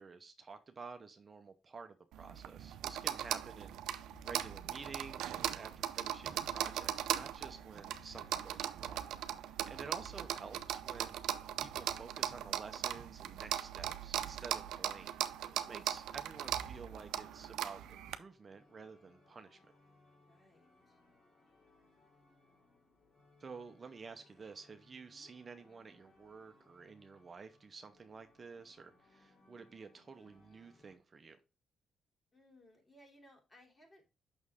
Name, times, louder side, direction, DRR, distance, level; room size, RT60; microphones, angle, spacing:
voice 1, 0.0-9.1 9.7-11.2 11.6-15.1 15.5-19.6 23.4-31.4, right 4 dB, 35° right, 0.7 m, -51 dB
sound 1, 2.1-18.2, right 11 dB, 85° right, 0.6 m, -39 dB
sound 2, 3.2-12.5, left 7 dB, 80° left, 3.0 m, -65 dB
voice 2, 9.5-9.9 15.5-15.8 20.3-21.0 25.1-25.3 32.3-34.0, left 1 dB, 25° left, 3.1 m, -64 dB
sound 3, 16.2-31.0, left 2 dB, 45° left, 3.2 m, -68 dB
6.3 x 6.1 x 3.6 m
cardioid pair, 90°, 0 cm